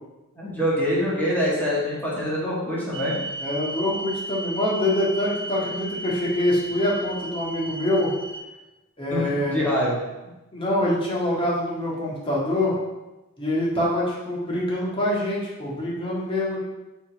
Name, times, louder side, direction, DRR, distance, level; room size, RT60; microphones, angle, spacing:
voice 1, 0.4-3.2 9.1-10.0, equal, 10° left, -7 dB, 1.8 m, -25 dB
sound 1, 2.9-8.4, right 2 dB, 25° right, 0.6 m, -35 dB
voice 2, 3.4-8.1 9.0-9.6 10.5-12.8 13.4-16.6, left 1 dB, 25° left, -5 dB, 1.7 m, -25 dB
5.5 x 4.1 x 5.2 m, 1.0 s
head